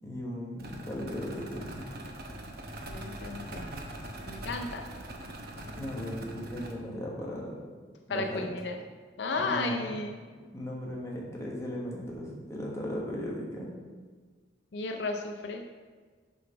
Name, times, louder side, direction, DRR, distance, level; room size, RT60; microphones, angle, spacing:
voice 1, 0.0-1.8 5.8-7.6 8.1-8.5 9.4-9.9 10.5-13.7, equal, 15° left, -3 dB, 1.2 m, -37 dB
sound 1, 0.6-6.7, right 1 dB, 55° right, 0.9 m, -42 dB
voice 2, 2.9-3.6 4.3-4.8 8.1-8.8 9.2-10.2 14.7-15.6, left 3 dB, 60° left, 4 dB, 0.4 m, -33 dB
6.8 x 3.9 x 5.6 m, 1.5 s
head